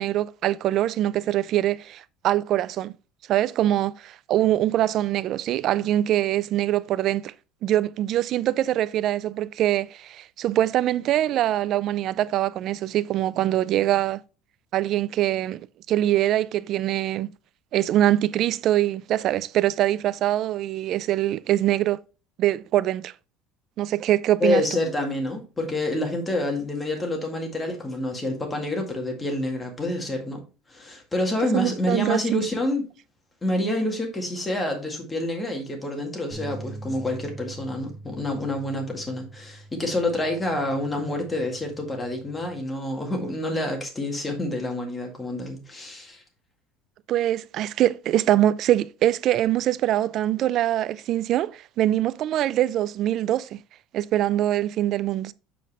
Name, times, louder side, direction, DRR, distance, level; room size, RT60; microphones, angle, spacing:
voice 1, 0.0-2.9 3.3-7.3 7.6-14.2 14.7-17.3 17.7-22.0 22.4-23.1 23.8-24.6 31.5-32.4 47.1-53.6 53.9-55.3, right 13 dB, 45° right, 0.3 m, -23 dB
voice 2, 24.4-30.4 30.7-32.9 33.4-46.2, left 1 dB, 10° left, 1.8 m, -28 dB
sound 1, 36.3-42.6, right 2 dB, 5° right, 1.7 m, -43 dB
7.6 x 5.2 x 3.3 m
cardioid pair, 150°, 0 cm